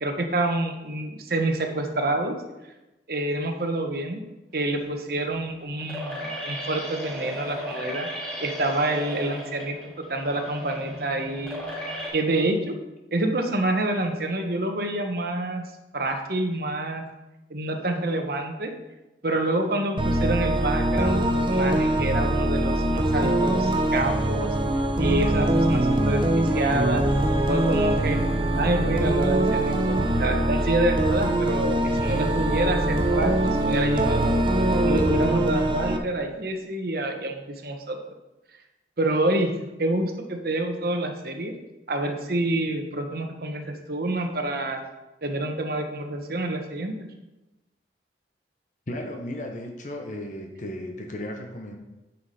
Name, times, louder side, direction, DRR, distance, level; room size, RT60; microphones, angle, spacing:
voice 1, 0.0-2.3 3.1-4.2 4.5-8.1 8.4-9.8 10.1-11.6 12.1-12.7 13.1-15.6 15.9-17.0 17.5-18.7 19.2-24.5 25.0-27.0 27.5-28.2 28.6-34.4 34.8-38.0 39.0-39.5 39.8-41.5 41.9-44.8 45.2-46.9, right 2 dB, 55° right, 4 dB, 1.1 m, -27 dB
sound 1, 4.6-12.1, equal, 5° left, 3.3 m, -36 dB
sound 2, 20.0-36.0, right 1 dB, 30° right, 0.7 m, -23 dB
voice 2, 48.9-51.8, left 1 dB, 45° left, 3 dB, 0.9 m, -35 dB
9.5 x 5.8 x 4.2 m, 1.0 s
head